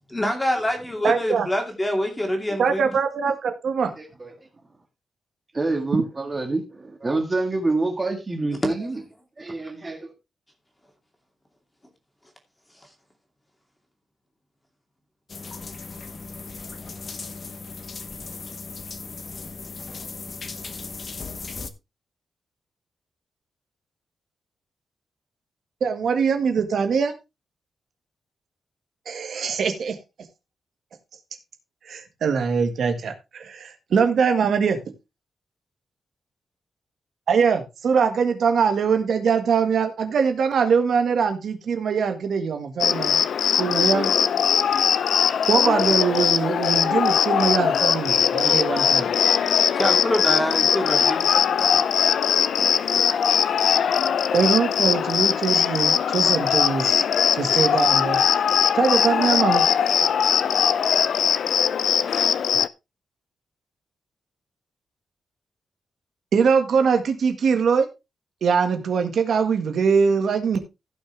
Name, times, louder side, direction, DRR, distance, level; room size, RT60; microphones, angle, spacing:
voice 1, 0.1-2.9 48.8-49.0 49.7-51.3, left 1 dB, 10° left, 2.6 m, -25 dB
voice 2, 1.0-1.5 2.6-3.9 25.8-27.1 29.0-30.0 31.8-34.8 37.3-43.2 43.6-44.1 45.5-49.1 54.3-57.0 57.3-58.3 58.7-59.6 66.3-67.9 68.4-70.6, right 6 dB, 65° right, 1.7 m, -22 dB
voice 3, 4.0-4.3 5.5-9.0 9.4-10.1, right 2 dB, 20° right, 1.7 m, -27 dB
sound 1, 15.3-21.7, left 4 dB, 35° left, 1.0 m, -37 dB
Cricket, 42.8-62.7, left 8 dB, 65° left, 0.5 m, -20 dB
16.0 x 6.0 x 3.4 m
wide cardioid pair, 170°, 0 cm